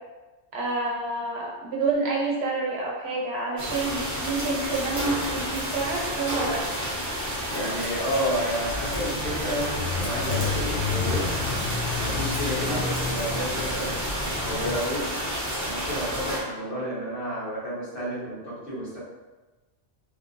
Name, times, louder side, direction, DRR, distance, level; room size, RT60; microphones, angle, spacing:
voice 1, 0.5-6.6 6.9-7.1 12.6-12.8, right 3 dB, 70° right, -3 dB, 0.9 m, -28 dB
sound 1, 3.6-16.4, equal, 20° right, 0.5 m, -30 dB
voice 2, 7.5-11.3 11.9-15.1 15.6-19.0, equal, 65° left, -9 dB, 1.5 m, -31 dB
Bicycle / Mechanisms, 8.6-14.8, left 5 dB, 90° left, 0.9 m, -31 dB
3.2 x 2.6 x 2.5 m, 1.2 s
omnidirectional pair, 1.2 m